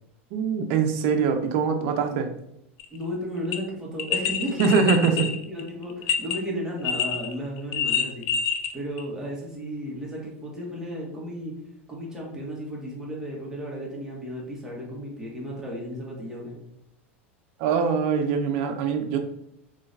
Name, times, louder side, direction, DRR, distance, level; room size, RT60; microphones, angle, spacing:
voice 1, 0.3-2.3 4.6-5.2 17.6-19.2, right 5 dB, 60° right, 6 dB, 0.6 m, -23 dB
sound 1, 2.8-3.0 3.5-3.6 4.0-6.4 6.8-7.3 7.6-8.7 9.0-9.1, left 7 dB, 55° left, 0.5 m, -26 dB
voice 2, 2.9-4.6 5.1-5.2 5.5-8.2 8.7-11.5 11.9-16.6, equal, 10° right, -4 dB, 1.5 m, -34 dB
3.7 x 3.2 x 2.6 m, 0.76 s
hypercardioid pair, 95°, 7 cm